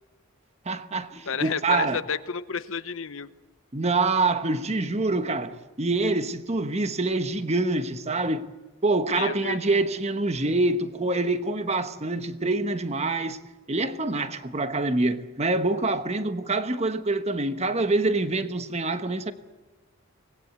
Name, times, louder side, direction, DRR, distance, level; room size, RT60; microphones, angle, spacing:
voice 1, 0.6-2.0 3.7-8.4 8.8-13.4 13.7-19.3, right 2 dB, 30° right, 1.2 m, -26 dB
voice 2, 1.3-3.3 9.1-9.6, left 5 dB, 65° left, 0.9 m, -31 dB
25.0 x 20.0 x 8.1 m
head